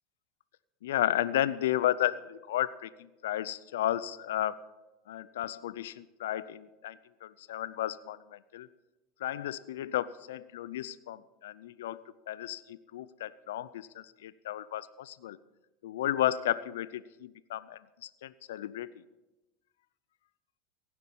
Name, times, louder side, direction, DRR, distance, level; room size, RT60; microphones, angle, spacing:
voice 1, 0.8-4.6 5.1-8.7 9.2-15.4 15.8-18.9, left 12 dB, 75° left, 18 dB, 0.5 m, -33 dB
16.5 x 10.5 x 5.5 m, 1.0 s
hypercardioid pair, 85°, 0 cm